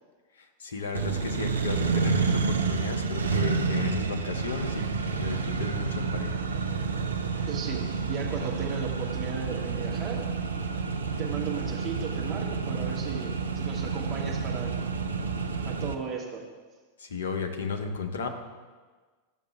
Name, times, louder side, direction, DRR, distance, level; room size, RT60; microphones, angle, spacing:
voice 1, 0.4-6.4 17.0-18.3, left 5 dB, 65° left, 5 dB, 0.8 m, -34 dB
Accelerating revving vroom, 0.9-15.9, right 5 dB, 70° right, 0.5 m, -29 dB
voice 2, 7.5-10.3 11.2-14.7 15.7-16.4, right 5 dB, 30° right, -3 dB, 1.5 m, -36 dB
12.5 x 6.5 x 2.3 m, 1.4 s
figure-of-eight pair, 90°, 0 cm